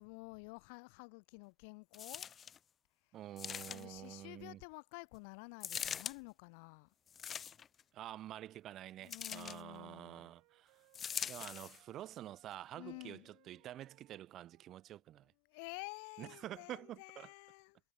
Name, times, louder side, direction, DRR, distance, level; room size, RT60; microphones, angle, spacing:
voice 1, 0.0-2.3 3.0-3.1 3.7-6.9 9.0-10.3 12.7-13.7 15.4-17.8, left 35 dB, 70° left, 1.1 m, -51 dB
sound 1, 1.9-2.6 3.4-4.1 5.6-6.2 7.1-7.8 9.1-9.6 10.9-11.8 12.5-12.6, left 8 dB, 35° left, 0.4 m, -43 dB
voice 2, 3.1-4.6 7.9-10.8 11.3-15.3 16.2-17.3, right 12 dB, 50° right, 1.3 m, -48 dB
sound 2, 9.9-15.0, right 35 dB, 65° right, 5.1 m, -71 dB
hypercardioid pair, 80°, 0 cm